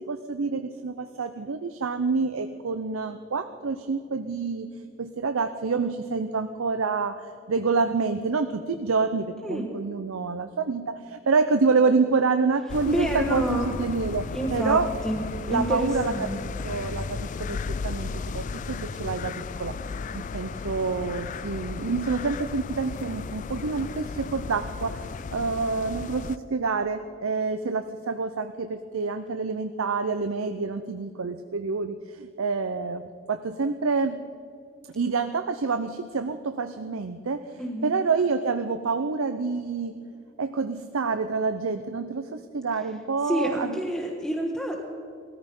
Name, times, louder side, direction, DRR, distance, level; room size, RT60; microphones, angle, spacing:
voice 1, 0.0-4.7 5.0-14.2 14.5-14.9 15.5-19.8 20.1-25.0 25.3-34.2 34.9-40.0 40.4-43.8, right 4 dB, 80° right, 9 dB, 0.6 m, -27 dB
sound 1, 12.7-26.4, left 4 dB, 35° left, 0.3 m, -35 dB
voice 2, 12.9-13.7 14.3-15.2 15.5-16.4 37.6-37.9 43.2-44.8, right 1 dB, ahead, -1 dB, 1.2 m, -28 dB
19.0 x 14.0 x 5.3 m, 2.4 s
head